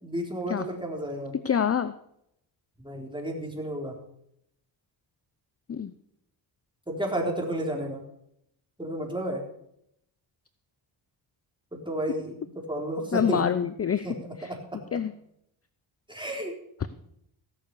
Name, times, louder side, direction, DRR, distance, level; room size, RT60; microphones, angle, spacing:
voice 1, 0.0-1.3 2.8-4.0 6.9-8.0 8.8-9.4 11.7-12.3 12.7-13.6 14.0-14.2 14.5-14.6 16.1-16.6 16.9-17.0, right 1 dB, 10° right, 1 dB, 3.9 m, -31 dB
voice 2, 1.3-1.9 5.7-5.9 13.1-14.5 14.9-15.1, left 8 dB, 30° left, 13 dB, 0.6 m, -26 dB
16.0 x 6.8 x 6.8 m, 0.75 s
cardioid pair, 85°, 48 cm